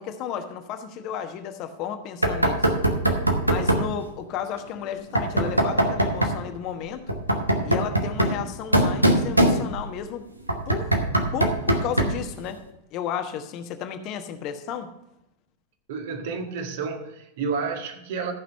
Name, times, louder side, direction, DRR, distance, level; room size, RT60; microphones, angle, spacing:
voice 1, 0.0-2.7 3.4-7.2 7.6-10.3 10.7-10.9 11.3-12.6 12.9-14.9, left 8 dB, 40° left, 1.2 m, -33 dB
Knock, 2.2-3.9 5.2-6.4 7.1-10.0 10.5-12.3, right 1 dB, 85° right, 1.2 m, -22 dB
voice 2, 15.9-18.3, right 5 dB, 55° right, 1.7 m, -30 dB
14.0 x 5.9 x 5.4 m
figure-of-eight pair, 90°, 0 cm